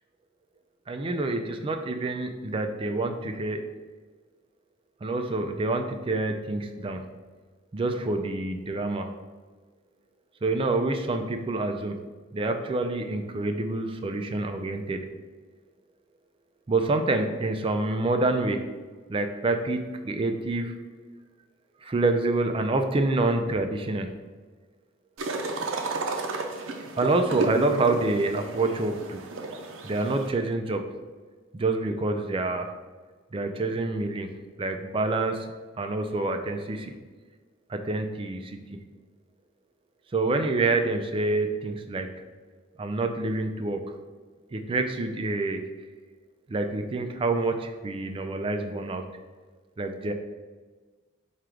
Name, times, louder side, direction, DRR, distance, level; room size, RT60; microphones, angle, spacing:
voice 1, 0.9-3.6 5.0-7.0 7.7-9.1 10.4-12.0 12.3-15.0 16.7-18.7 19.1-20.7 21.8-24.1 27.0-29.2 29.8-30.9 31.5-32.7 33.3-34.3 34.6-35.5 35.8-36.9 37.7-38.8 40.1-42.1 42.8-43.8 44.5-45.7 46.5-49.0 49.8-50.1, right 2 dB, 25° right, 6 dB, 0.3 m, -27 dB
sound 1, 25.2-30.3, right 3 dB, 80° right, 0.5 m, -33 dB
4.4 x 2.4 x 4.8 m, 1.4 s
head